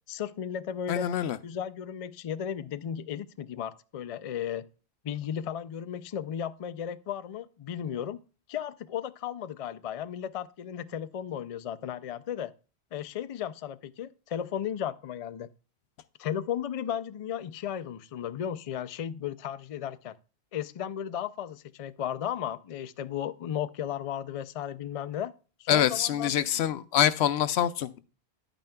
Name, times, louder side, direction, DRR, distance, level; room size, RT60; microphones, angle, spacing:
voice 1, 0.1-1.1 1.4-4.7 5.0-8.2 8.5-12.5 12.9-15.5 16.2-20.2 20.5-25.3 25.6-26.3, left 9 dB, 55° left, 0.4 m, -35 dB
voice 2, 0.9-1.4 25.7-28.0, left 10 dB, 80° left, 0.8 m, -25 dB
10.5 x 9.0 x 2.2 m
omnidirectional pair, 1.1 m